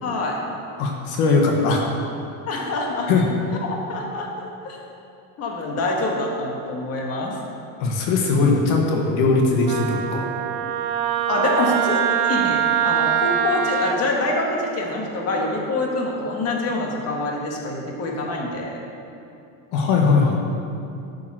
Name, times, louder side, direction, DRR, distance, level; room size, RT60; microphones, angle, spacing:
voice 1, 0.0-0.4 2.4-3.1 3.6-4.8 5.4-7.4 11.3-18.8, left 2 dB, 35° left, -1 dB, 1.6 m, -25 dB
voice 2, 0.8-1.8 3.1-3.3 7.8-10.3 19.7-20.3, left 4 dB, 60° left, 0 dB, 1.5 m, -19 dB
Wind instrument woodwind instrument, 9.7-14.0, right 9 dB, 55° right, 0.8 m, -23 dB
11.0 x 7.0 x 6.2 m, 2.7 s
cardioid pair, 155°, 43 cm